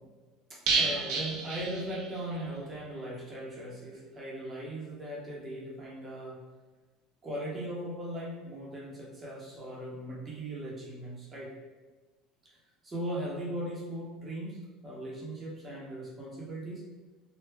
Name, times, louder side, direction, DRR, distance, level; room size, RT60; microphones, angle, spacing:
voice 1, 0.5-6.4 7.2-11.5 12.8-16.8, right 1 dB, 25° right, -5 dB, 1.0 m, -38 dB
sound 1, 0.7-2.4 2.7-2.8 3.1-3.2, right 4 dB, 55° right, 0.7 m, -31 dB
3.3 x 2.4 x 3.3 m, 1.3 s
supercardioid pair, 115°, 0 cm